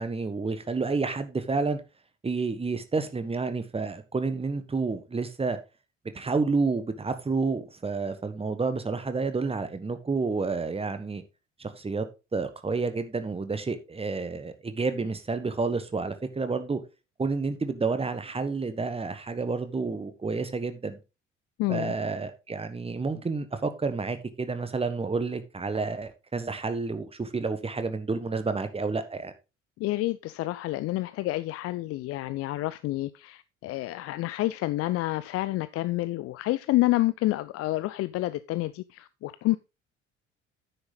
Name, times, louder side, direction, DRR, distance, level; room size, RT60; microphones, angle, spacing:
voice 1, 0.0-1.8 2.2-5.6 6.1-11.2 11.6-12.0 12.3-16.8 17.2-21.0 21.7-29.3, right 4 dB, 15° right, 1.4 m, -30 dB
voice 2, 21.6-21.9 29.8-39.6, left 17 dB, 40° left, 0.5 m, -28 dB
9.5 x 6.8 x 3.9 m
figure-of-eight pair, 50°, 35 cm